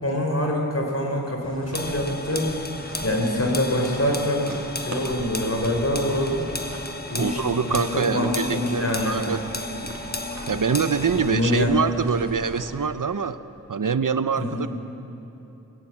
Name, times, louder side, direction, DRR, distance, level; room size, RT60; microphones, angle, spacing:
voice 1, 0.0-2.4 3.0-4.5 4.8-6.4 7.1-9.2 11.2-11.8 14.4-14.6, left 1 dB, 45° left, 1 dB, 4.2 m, -25 dB
sound 1, 1.4-12.7, right 1 dB, 55° right, 3.2 m, -40 dB
sound 2, 1.7-11.4, left 2 dB, 30° left, 1.3 m, -34 dB
voice 2, 7.2-9.4 10.5-13.4 13.7-14.7, right 6 dB, 70° right, 13 dB, 0.7 m, -25 dB
21.0 x 17.0 x 7.5 m, 3.0 s
wide cardioid pair, 45°, 33 cm